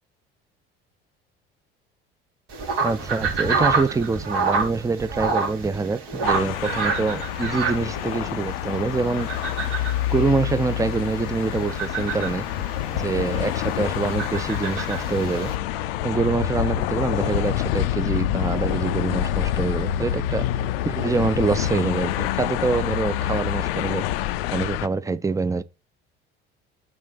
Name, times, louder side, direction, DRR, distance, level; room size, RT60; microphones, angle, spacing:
sound 1, 2.5-15.5, right 4 dB, 65° right, 3.2 m, -29 dB
voice 1, 2.8-9.3 10.1-12.5 12.9-15.5 16.0-20.5 20.8-24.0 24.5-25.6, right 4 dB, 10° right, 0.6 m, -25 dB
sound 2, 6.2-24.9, left 12 dB, 75° left, 0.6 m, -27 dB
6.2 x 4.2 x 5.7 m
hypercardioid pair, 60°, 30 cm